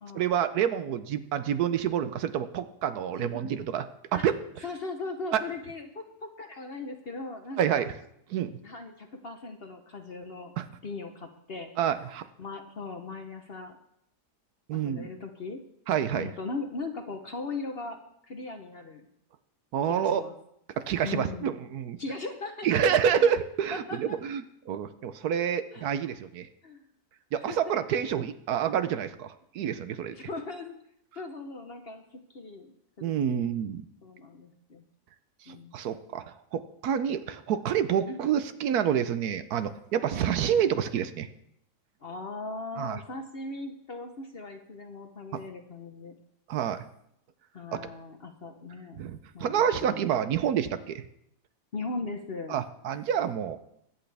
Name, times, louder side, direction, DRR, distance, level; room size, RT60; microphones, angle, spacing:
voice 1, 0.1-3.9 4.1-4.3 5.3-5.4 7.6-7.9 8.3-8.5 10.6-10.7 11.8-12.3 14.7-15.1 15.9-16.3 19.7-20.2 20.8-22.0 22.6-26.5 27.3-30.1 33.0-33.8 35.5-41.3 42.8-43.0 45.3-45.4 46.5-46.8 47.7-47.9 49.0-51.0 52.5-53.6, right 9 dB, 70° right, 11 dB, 1.1 m, -28 dB
voice 2, 3.2-3.6 4.1-4.3 4.6-7.9 8.6-10.5 10.8-11.7 12.4-13.8 14.7-15.6 16.1-18.0 18.3-19.0 19.9-20.3 21.0-21.5 22.0-23.3 23.7-24.2 25.7-25.8 26.6-26.8 27.5-27.6 30.1-30.7 31.1-32.0 32.3-33.5 34.0-34.8 35.5-35.7 38.1-38.2 40.1-40.4 42.0-46.1 47.5-49.0 49.3-50.1 51.7-52.6, left 3 dB, 45° left, 5 dB, 0.9 m, -39 dB
22.5 x 8.4 x 3.4 m, 0.75 s
omnidirectional pair, 1.8 m